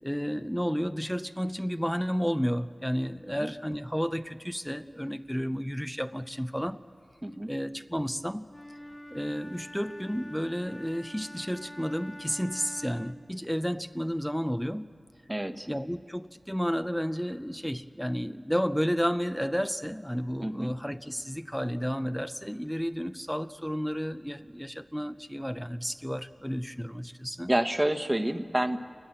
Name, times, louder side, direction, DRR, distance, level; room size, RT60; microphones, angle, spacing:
voice 1, 0.0-6.8 7.5-8.4 9.1-14.9 15.7-27.5, equal, ahead, 11 dB, 0.6 m, -32 dB
Wind instrument woodwind instrument, 8.5-13.3, left 1 dB, 20° left, 1.1 m, -46 dB
voice 2, 15.3-15.7 20.4-20.7 27.5-28.8, right 1 dB, 20° right, 9 dB, 1.2 m, -28 dB
28.5 x 20.0 x 7.6 m, 2.3 s
wide cardioid pair, 55°, 0 cm